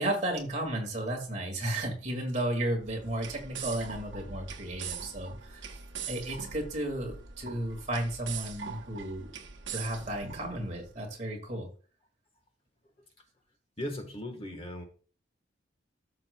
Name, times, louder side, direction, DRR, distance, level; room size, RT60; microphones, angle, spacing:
voice 1, 0.0-5.7 6.1-9.3 9.7-11.7, right 1 dB, 40° right, 1 dB, 2.1 m, -33 dB
sound 1, 2.8-10.9, right 6 dB, 75° right, 0.9 m, -42 dB
voice 2, 10.0-10.4 13.8-14.8, left 1 dB, 30° left, 5 dB, 1.3 m, -39 dB
13.5 x 6.5 x 2.3 m, 0.41 s
head